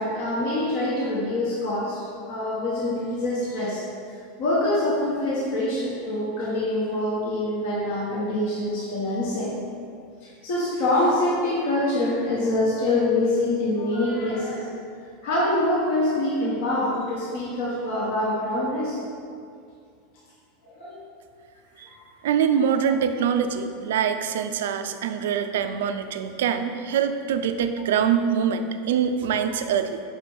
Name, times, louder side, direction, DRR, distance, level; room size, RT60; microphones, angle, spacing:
voice 1, 0.0-9.5 10.2-14.7 15.2-19.0 20.6-21.0 21.9-22.0, left 1 dB, 60° left, -5 dB, 1.1 m, -25 dB
voice 2, 22.2-30.0, right 7 dB, 65° right, 9 dB, 0.4 m, -24 dB
5.7 x 4.8 x 4.0 m, 2.3 s
figure-of-eight pair, 85°, 0 cm